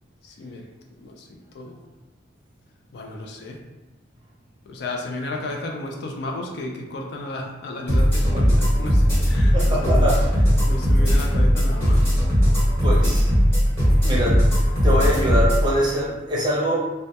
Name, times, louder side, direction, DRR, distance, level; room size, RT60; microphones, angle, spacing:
voice 1, 0.2-0.6 1.0-1.8 2.9-3.6 4.7-10.1 10.7-12.1, left 2 dB, 60° left, 1 dB, 0.3 m, -33 dB
sound 1, 7.9-15.6, equal, 10° left, 0.9 m, -18 dB
voice 2, 9.5-10.2 12.8-13.3 14.0-14.4 14.8-16.8, equal, 25° right, -5 dB, 0.5 m, -23 dB
2.1 x 2.1 x 2.7 m, 1.1 s
head